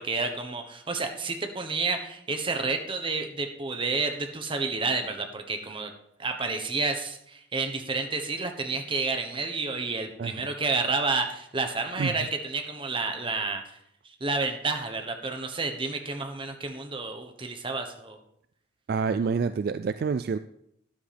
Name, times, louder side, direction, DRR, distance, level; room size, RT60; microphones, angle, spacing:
voice 1, 0.0-5.9 6.2-13.8 14.0-18.2, right 3 dB, 30° right, 5 dB, 1.1 m, -30 dB
voice 2, 18.9-20.4, right 5 dB, 55° right, 12 dB, 0.3 m, -27 dB
12.5 x 10.0 x 3.4 m, 0.76 s
head